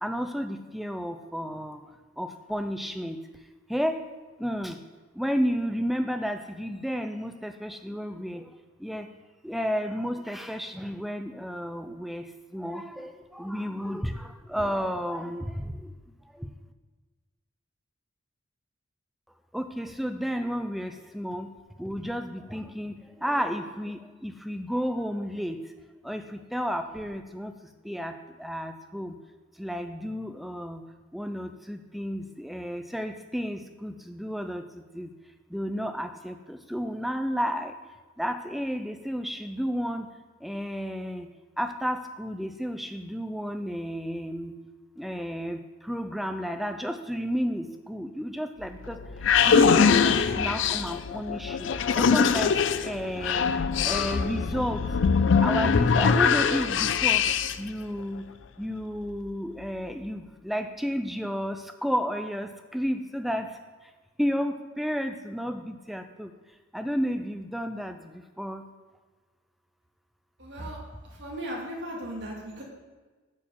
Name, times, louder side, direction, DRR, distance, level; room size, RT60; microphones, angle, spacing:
voice 1, 0.0-1.8 2.2-3.2 3.7-4.0 4.4-4.8 5.2-8.4 8.8-9.1 9.4-12.3 12.5-15.9 16.3-16.5 19.5-21.5 21.8-25.6 26.0-27.5 27.8-29.1 29.6-30.8 31.1-35.1 35.5-37.7 38.2-40.1 40.4-41.3 41.6-44.5 45.0-49.0 49.4-53.5 53.8-54.9 55.4-57.2 57.6-58.3 58.6-63.5 64.2-66.3 66.7-68.6, equal, ahead, 7 dB, 0.4 m, -32 dB
sound 1, 48.6-57.7, left 6 dB, 65° left, 0.4 m, -23 dB
voice 2, 70.4-70.8 71.1-72.6, equal, 60° right, -2 dB, 2.2 m, -36 dB
8.7 x 4.7 x 7.2 m, 1.3 s
head